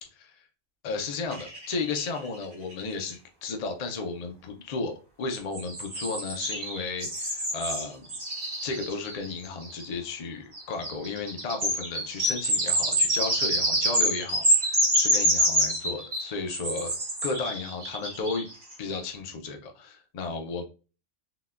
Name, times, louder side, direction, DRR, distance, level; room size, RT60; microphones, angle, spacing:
voice 1, 0.8-4.9 5.2-8.1 8.6-16.9 17.2-18.5 18.8-20.6, left 4 dB, 75° left, 4 dB, 0.3 m, -34 dB
sound 1, 1.3-2.4 2.7-2.8 3.0-3.1 5.3-9.8 10.5-18.7, equal, 45° right, 1.3 m, -27 dB
3.8 x 2.1 x 2.3 m, 0.34 s
omnidirectional pair, 1.3 m